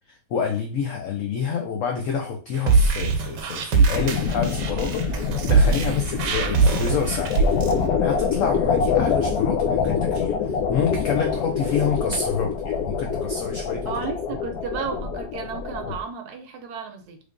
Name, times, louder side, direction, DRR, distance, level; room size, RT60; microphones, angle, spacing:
voice 1, 0.1-7.5 8.0-13.9, left 6 dB, 90° left, 3 dB, 0.6 m, -28 dB
sound 1, 2.5-7.7, right 4 dB, 85° right, 1.3 m, -21 dB
sound 2, 3.9-16.0, left 6 dB, 70° left, 1.0 m, -25 dB
voice 2, 13.9-17.2, right 5 dB, 70° right, 5 dB, 1.1 m, -33 dB
3.2 x 3.2 x 2.5 m, 0.39 s
omnidirectional pair, 1.9 m